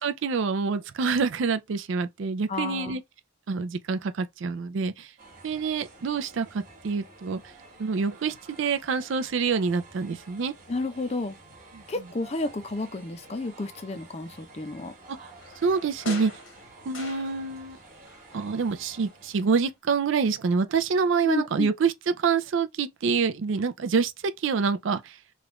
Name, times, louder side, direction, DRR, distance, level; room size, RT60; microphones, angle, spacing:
voice 1, 0.0-3.0 3.5-5.1 5.4-7.4 7.8-10.5 11.7-11.8 15.1-15.2 15.6-16.3 16.9-17.8 18.3-24.1 24.4-25.1, right 5 dB, 65° right, 0.4 m, -26 dB
voice 2, 2.5-3.0 10.7-11.4 11.9-14.9 21.2-21.7, left 2 dB, 30° left, 0.5 m, -31 dB
sound 1, 5.2-19.8, right 2 dB, 40° right, 1.2 m, -51 dB
sound 2, 15.4-17.8 18.1-19.2 19.5-19.6, left 3 dB, 70° left, 1.1 m, -43 dB
3.1 x 2.4 x 3.0 m
head